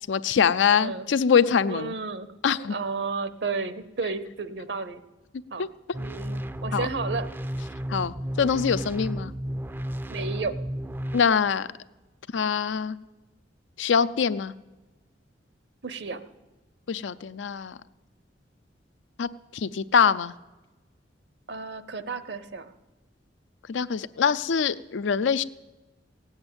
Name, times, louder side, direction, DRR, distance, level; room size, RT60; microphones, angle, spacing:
voice 1, 0.1-2.0 2.4-2.8 5.6-5.7 6.7-6.9 7.9-9.3 11.1-11.7 12.3-13.0 13.8-14.5 16.9-17.8 19.2-20.3 23.7-25.4, left 6 dB, 85° left, 15 dB, 0.5 m, -24 dB
voice 2, 0.7-1.1 1.7-5.0 5.5-5.7 6.0-7.3 10.1-10.5 15.8-16.2 21.5-22.7, right 4 dB, 65° right, 13 dB, 0.8 m, -32 dB
sound 1, 5.9-11.2, equal, 10° right, 0.4 m, -33 dB
17.0 x 8.0 x 8.8 m, 1.1 s
head